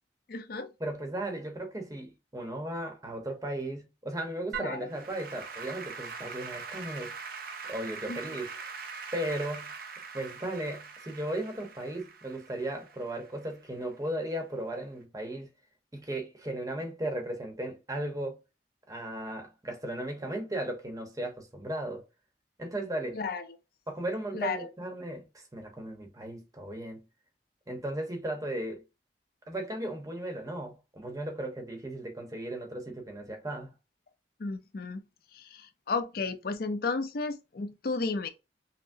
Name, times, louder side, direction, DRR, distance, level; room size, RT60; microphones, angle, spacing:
voice 1, 0.3-0.7 4.6-4.9 8.1-8.2 23.1-23.6 24.3-24.7 34.4-35.0 35.3-38.3, left 4 dB, 55° left, 0.5 m, -33 dB
voice 2, 0.8-7.1 7.7-8.5 9.1-9.7 10.1-15.5 15.9-18.4 18.9-22.0 22.6-23.2 23.9-27.0 27.7-28.8 29.5-33.7, right 1 dB, 20° right, 0.8 m, -36 dB
Applause / Keyboard (musical), 4.5-13.9, right 5 dB, 55° right, 0.6 m, -42 dB
5.7 x 2.0 x 2.6 m
head